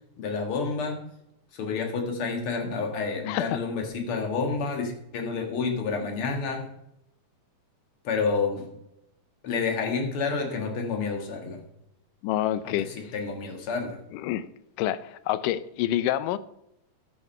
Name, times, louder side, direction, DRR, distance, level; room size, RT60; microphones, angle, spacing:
voice 1, 0.2-1.1 1.5-6.7 8.0-8.7 9.4-11.6 12.6-14.0, left 4 dB, 50° left, 2.1 m, -29 dB
voice 2, 3.3-3.6 12.2-12.9 14.1-14.5 14.8-16.4, left 13 dB, 80° left, 2.1 m, -27 dB
12.5 x 6.1 x 5.4 m
omnidirectional pair, 3.8 m